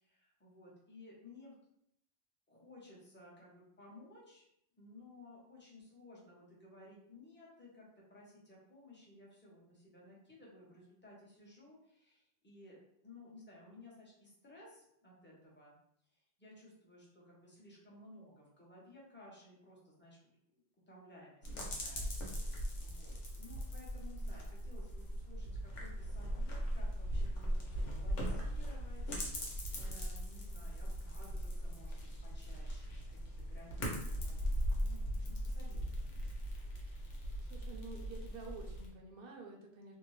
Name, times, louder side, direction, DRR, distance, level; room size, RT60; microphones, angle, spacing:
voice 1, 0.0-1.6 2.5-4.4 4.8-12.8 13.0-15.8 16.1-20.2 20.5-31.9 32.2-34.5 34.8-36.3, left 2 dB, 10° left, -5 dB, 0.5 m, -57 dB
sound 1, 21.4-38.9, equal, 80° left, 1.1 m, -39 dB
voice 2, 37.5-40.0, right 3 dB, 60° right, 1 dB, 0.6 m, -50 dB
2.7 x 2.1 x 3.0 m, 0.74 s
omnidirectional pair, 1.3 m